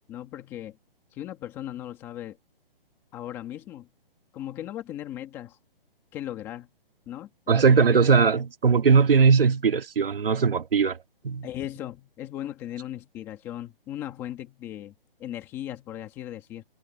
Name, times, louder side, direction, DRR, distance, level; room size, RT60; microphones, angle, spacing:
voice 1, 0.1-0.8 1.1-2.4 3.1-3.9 4.3-5.6 6.1-6.7 7.1-8.1 11.4-14.9 15.2-16.6, left 12 dB, 10° left, 1.5 m, -37 dB
voice 2, 7.5-11.0 11.2-11.5, right 5 dB, 70° right, 2.2 m, -20 dB
hypercardioid pair, 180°, 30 cm